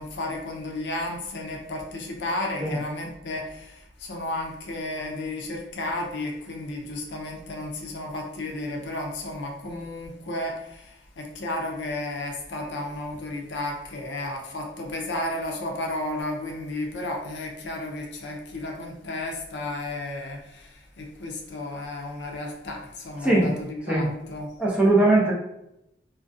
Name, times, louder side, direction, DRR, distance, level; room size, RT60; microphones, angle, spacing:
voice 1, 0.0-24.5, left 1 dB, 80° left, 1 dB, 0.5 m, -33 dB
voice 2, 23.2-23.5 23.9-24.1 24.6-25.3, right 2 dB, 5° right, -5 dB, 0.4 m, -20 dB
2.3 x 2.2 x 2.5 m, 0.84 s
head